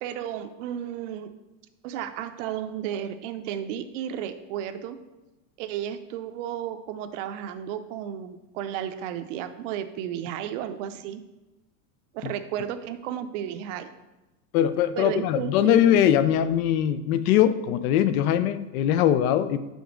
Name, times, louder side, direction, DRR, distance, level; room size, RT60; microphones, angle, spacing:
voice 1, 0.0-1.3 1.8-5.0 5.6-11.2 12.1-13.9 15.0-15.9, right 10 dB, 55° right, 10 dB, 0.6 m, -33 dB
voice 2, 14.5-19.6, left 10 dB, 70° left, 13 dB, 0.6 m, -21 dB
5.2 x 3.9 x 5.0 m, 1.0 s
supercardioid pair, 155°, 44 cm